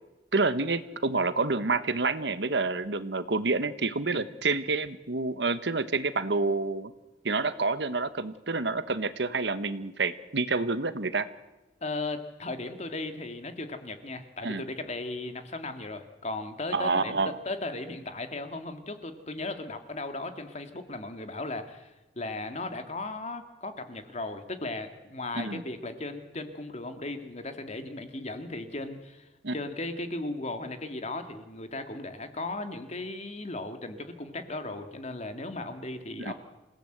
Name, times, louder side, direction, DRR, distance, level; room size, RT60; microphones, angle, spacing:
voice 1, 0.3-6.9 7.2-11.3 14.4-14.6 16.7-17.3 25.3-25.6 29.4-29.5 36.2-36.3, right 3 dB, 70° right, 12 dB, 1.3 m, -28 dB
voice 2, 11.8-21.9 22.2-36.3, left 2 dB, 40° left, 7 dB, 2.1 m, -36 dB
27.5 x 17.5 x 8.0 m, 1.0 s
head